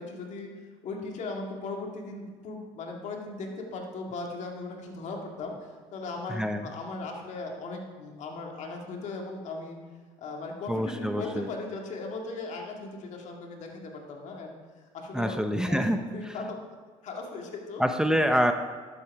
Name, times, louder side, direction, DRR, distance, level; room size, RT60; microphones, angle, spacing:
voice 1, 0.0-9.8 10.2-14.5 14.9-15.8 16.1-16.6 17.0-17.8, left 3 dB, 60° left, 1 dB, 2.1 m, -38 dB
voice 2, 6.3-6.6 10.7-11.5 15.1-16.3 17.8-18.5, equal, 5° right, 6 dB, 0.7 m, -26 dB
11.5 x 8.0 x 4.7 m, 1.5 s
supercardioid pair, 75°, 14 cm